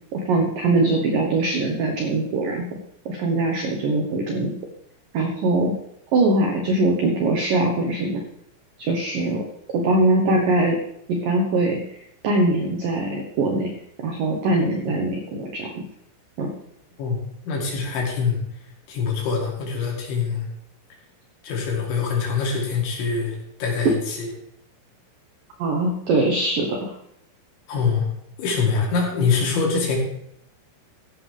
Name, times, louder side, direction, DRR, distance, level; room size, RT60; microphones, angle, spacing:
voice 1, 0.1-2.6 3.1-4.5 5.1-5.8 6.1-8.2 8.8-9.4 9.7-10.8 11.1-11.8 12.2-13.7 14.0-15.8 16.4-16.5 25.6-27.0, right 2 dB, 80° right, 2 dB, 1.9 m, -22 dB
voice 2, 17.5-18.4 18.9-20.5 21.4-24.3 27.7-28.1 28.4-30.0, left 5 dB, 65° left, -1 dB, 5.0 m, -24 dB
15.0 x 11.0 x 3.5 m, 0.75 s
omnidirectional pair, 6.0 m